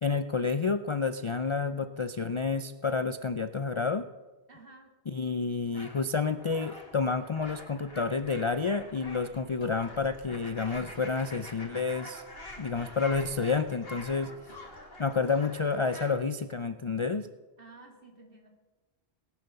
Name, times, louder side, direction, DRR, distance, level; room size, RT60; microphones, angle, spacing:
voice 1, 0.0-4.1 5.1-12.2 12.6-14.3 15.0-17.3, left 4 dB, 40° left, 11 dB, 0.4 m, -29 dB
voice 2, 4.5-4.9 17.6-18.5, right 3 dB, 55° right, 3 dB, 2.7 m, -53 dB
sound 1, 5.7-16.2, left 1 dB, 60° left, 3.0 m, -47 dB
sound 2, 9.3-15.7, left 1 dB, 80° left, 4.2 m, -59 dB
19.0 x 10.5 x 6.9 m, 1.2 s
omnidirectional pair, 1.1 m